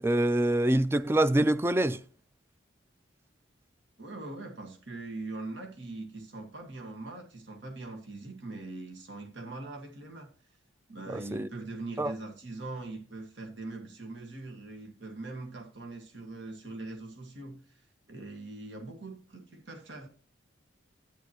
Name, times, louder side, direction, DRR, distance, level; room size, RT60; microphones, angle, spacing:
voice 1, 0.0-2.0 11.1-11.5 12.0-12.1, right 1 dB, 10° right, 0.3 m, -25 dB
voice 2, 4.0-10.3 10.9-17.8 18.1-20.1, right 2 dB, 65° right, 1.6 m, -42 dB
10.5 x 9.2 x 2.9 m
head